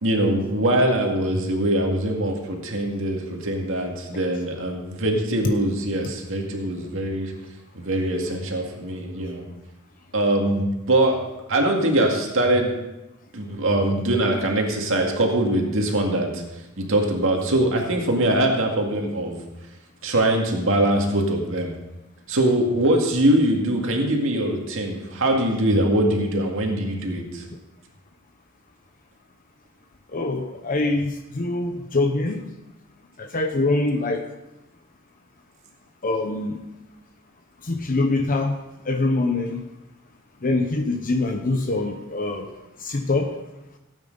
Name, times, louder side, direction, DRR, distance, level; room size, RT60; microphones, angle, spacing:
voice 1, 0.0-7.3 7.7-9.5 10.1-11.2 11.5-12.7 13.3-16.4 16.8-19.4 20.0-21.7 22.3-27.4, right 1 dB, 65° right, 1 dB, 2.1 m, -22 dB
voice 2, 30.1-32.5 33.2-34.3 36.0-36.6 37.6-38.6 38.8-39.6 40.4-42.5 42.8-43.3, left 2 dB, 40° left, 5 dB, 0.8 m, -24 dB
17.0 x 8.9 x 3.9 m, 0.98 s
head